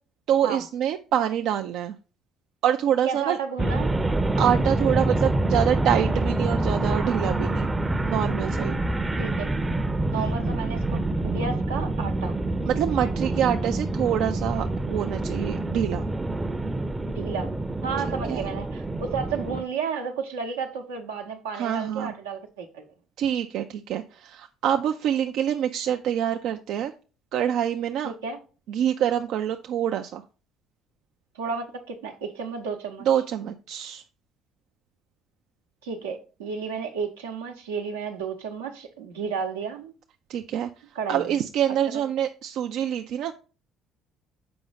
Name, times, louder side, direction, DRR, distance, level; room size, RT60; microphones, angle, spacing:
voice 1, 0.3-2.0 2.6-3.4 4.4-7.7 8.1-8.8 10.1-10.3 12.7-16.0 18.3-18.4 21.5-22.1 23.2-26.9 27.3-28.1 28.7-30.2 33.1-34.0 40.3-40.7 41.1-43.3, right 10 dB, 65° right, 0.4 m, -26 dB
voice 2, 3.0-3.9 9.2-9.5 10.1-12.3 17.1-22.8 28.0-28.4 31.3-33.1 35.8-39.9 40.9-41.3 41.9-42.0, right 5 dB, 85° right, 0.8 m, -32 dB
sound 1, 3.6-19.6, right 2 dB, 20° right, 0.6 m, -26 dB
6.8 x 4.9 x 4.0 m
hypercardioid pair, 55°, 0 cm